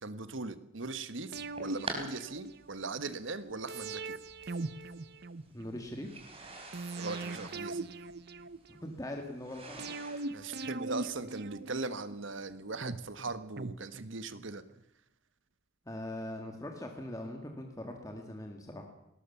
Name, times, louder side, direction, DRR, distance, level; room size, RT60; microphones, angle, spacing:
voice 1, 0.0-4.1 7.0-7.9 10.3-14.6, right 3 dB, 70° right, 12 dB, 1.4 m, -39 dB
sound 1, 1.3-2.0 3.0-3.1 4.3-4.4 6.0-10.3, right 3 dB, 30° right, 4.3 m, -44 dB
sound 2, 1.3-2.9 3.7-5.8 6.7-8.9 9.8-12.2 12.8-14.5 14.8-14.9, right 3 dB, 50° right, 0.8 m, -41 dB
voice 2, 5.5-6.2 8.7-9.8 15.9-18.8, left 1 dB, 15° left, 2 dB, 2.2 m, -41 dB
20.0 x 18.5 x 7.0 m, 0.86 s
head